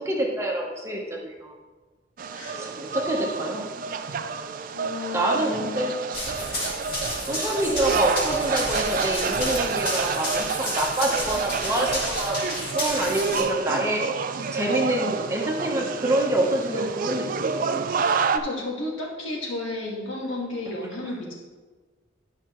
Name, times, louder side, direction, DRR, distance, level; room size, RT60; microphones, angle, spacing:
voice 1, 0.0-1.5 2.5-3.7 5.1-6.0 7.3-14.1 14.5-17.9, right 1 dB, 15° right, -1 dB, 1.0 m, -27 dB
sound 1, 2.2-18.4, right 5 dB, 45° right, 0.4 m, -29 dB
voice 2, 2.3-2.6 4.7-6.0 18.1-21.3, left 2 dB, 75° left, -3 dB, 2.0 m, -33 dB
Run, 6.1-13.4, left 1 dB, 50° left, 2.4 m, -31 dB
11.5 x 5.7 x 3.1 m, 1.3 s
head